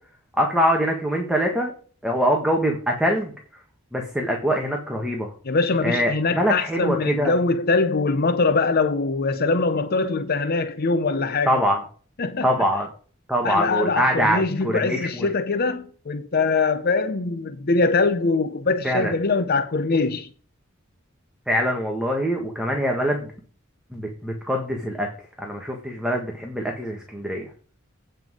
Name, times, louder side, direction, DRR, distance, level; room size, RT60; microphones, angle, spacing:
voice 1, 0.4-1.7 2.0-3.3 3.9-5.3 5.8-7.3 11.5-11.8 12.4-12.9 13.3-15.3 18.8-19.1 21.5-23.3 23.9-25.1 25.4-27.4, equal, 5° right, 1.6 m, -23 dB
voice 2, 5.4-11.6 12.2-12.5 13.4-20.3, left 3 dB, 50° left, 0.7 m, -23 dB
9.0 x 5.6 x 6.3 m
head